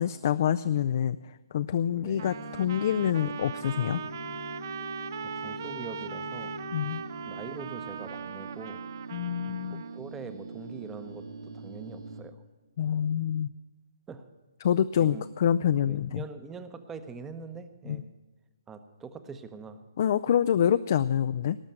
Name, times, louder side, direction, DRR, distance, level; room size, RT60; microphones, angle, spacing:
voice 1, 0.0-4.0 6.7-7.0 9.1-9.8 12.8-13.5 14.6-16.2 17.9-18.0 20.0-21.6, left 9 dB, 45° left, 12 dB, 0.4 m, -26 dB
voice 2, 1.9-2.3 5.2-6.6 7.3-8.8 9.7-12.4 14.1-14.3 15.0-15.2 15.9-18.1 18.7-19.8, right 5 dB, 10° right, 11 dB, 0.8 m, -43 dB
sound 1, 2.1-12.2, right 2 dB, 75° right, 2.1 m, -42 dB
Trumpet, 2.2-10.0, right 9 dB, 50° right, 0.5 m, -40 dB
18.5 x 6.3 x 9.3 m, 1.2 s
figure-of-eight pair, 135°, 2 cm